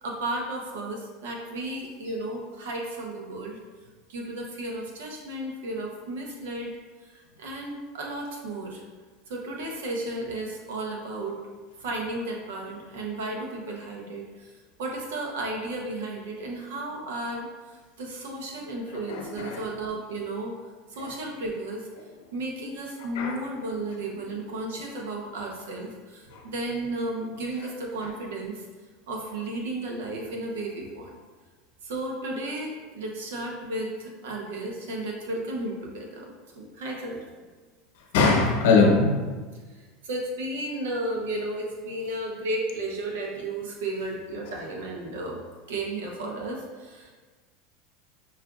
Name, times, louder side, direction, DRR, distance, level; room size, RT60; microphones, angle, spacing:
voice 1, 0.0-3.6 4.1-6.7 7.4-8.8 9.3-11.4 11.8-14.5 14.8-17.5 18.0-20.6 20.9-21.9 22.3-28.6 29.1-31.1 31.8-36.3 36.6-37.2 40.0-45.4 45.7-47.1, right 2 dB, 85° right, 0 dB, 0.8 m, -33 dB
voice 2, 19.1-19.6 23.1-23.4 38.1-39.2, left 3 dB, 75° left, 1 dB, 0.8 m, -21 dB
5.6 x 2.4 x 2.4 m, 1.4 s
supercardioid pair, 110°, 0 cm